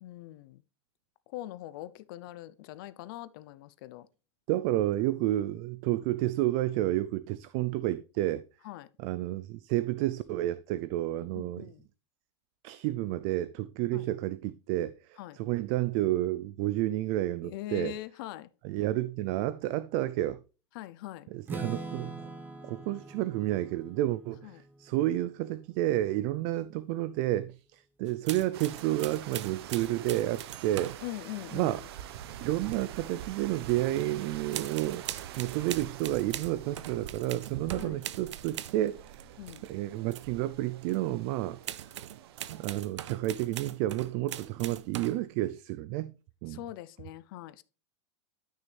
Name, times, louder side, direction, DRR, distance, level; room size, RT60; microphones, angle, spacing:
voice 1, 0.0-0.6 1.3-4.1 8.6-8.9 11.3-11.9 13.9-14.1 15.2-15.4 17.4-18.5 20.7-21.3 24.4-24.6 31.0-31.9 37.8-38.0 39.4-39.6 46.5-47.6, left 15 dB, 50° left, 0.6 m, -42 dB
voice 2, 4.5-8.4 9.0-11.7 12.6-17.9 18.6-20.4 21.3-22.3 22.6-31.0 31.5-31.8 32.4-35.1 35.4-39.3 39.6-41.6 42.5-46.1 46.4-46.6, right 15 dB, 40° right, 0.4 m, -30 dB
Strum, 21.5-25.4, right 3 dB, 15° right, 1.3 m, -43 dB
sound 1, 28.0-31.1 32.6-33.2 33.5-34.1 34.5-39.7 40.1-40.3 40.8-41.0 41.6-45.3, right 12 dB, 90° right, 0.6 m, -42 dB
sound 2, 28.5-42.6, right 11 dB, 60° right, 0.9 m, -45 dB
11.5 x 6.4 x 3.3 m
supercardioid pair, 155°, 15 cm